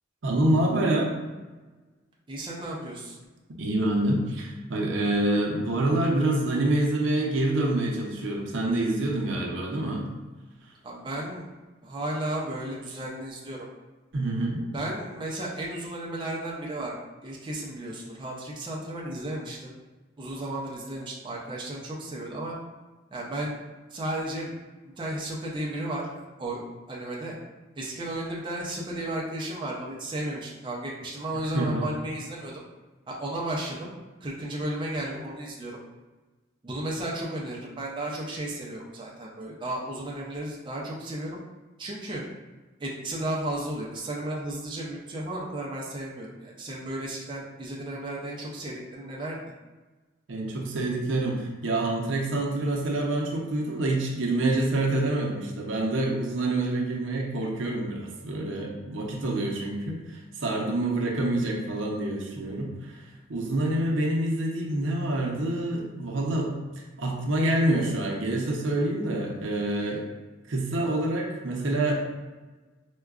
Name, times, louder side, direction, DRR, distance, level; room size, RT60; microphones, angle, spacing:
voice 1, 0.2-1.1 3.6-10.1 14.1-14.6 31.5-31.9 50.3-66.5 67.0-70.0 70.5-71.9, right 1 dB, 70° right, -1 dB, 0.6 m, -27 dB
voice 2, 2.3-3.2 10.8-11.5 11.8-13.7 14.7-19.7 20.2-22.5 23.1-23.6 23.9-24.5 25.0-27.4 27.8-32.6 33.1-33.9 34.2-35.8 36.6-41.4 41.8-42.2 42.8-49.4, right 1 dB, 25° right, -3 dB, 0.4 m, -34 dB
4.6 x 2.2 x 2.4 m, 1.2 s
head